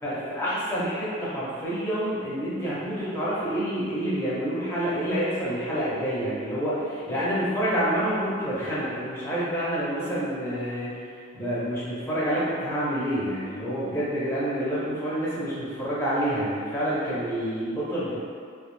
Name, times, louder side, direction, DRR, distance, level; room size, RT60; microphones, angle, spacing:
voice 1, 0.0-18.2, equal, 10° left, -9 dB, 0.5 m, -28 dB
2.3 x 2.1 x 3.0 m, 2.2 s
head